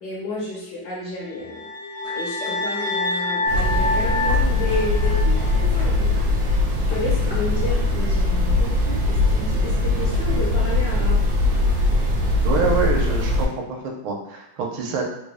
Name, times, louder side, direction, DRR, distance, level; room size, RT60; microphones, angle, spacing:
voice 1, 0.0-1.6 2.1-11.2, left 2 dB, 65° left, -3 dB, 1.1 m, -31 dB
sound 1, 1.3-5.6, left 2 dB, 85° left, 1.5 m, -27 dB
sound 2, 2.0-8.0, equal, 15° left, 0.4 m, -43 dB
sound 3, 3.5-13.5, left 2 dB, 70° right, 0.9 m, -21 dB
voice 2, 12.4-15.0, right 4 dB, 90° right, 1 dB, 1.5 m, -25 dB
3.7 x 2.1 x 3.4 m, 0.89 s
omnidirectional pair, 2.2 m